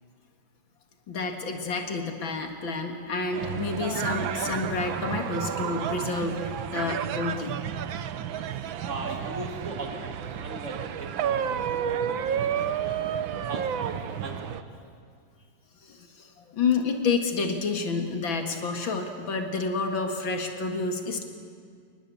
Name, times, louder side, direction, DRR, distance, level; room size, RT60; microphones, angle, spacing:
voice 1, 1.1-7.6 7.9-8.0 12.6-13.1 15.8-21.3, left 4 dB, 80° left, 4 dB, 2.7 m, -29 dB
sound 1, 3.3-14.6, right 8 dB, 85° right, 1.7 m, -31 dB
voice 2, 8.8-13.1 13.5-14.7, right 2 dB, 40° right, 2 dB, 3.1 m, -40 dB
29.5 x 20.0 x 8.5 m, 2.1 s
omnidirectional pair, 2.1 m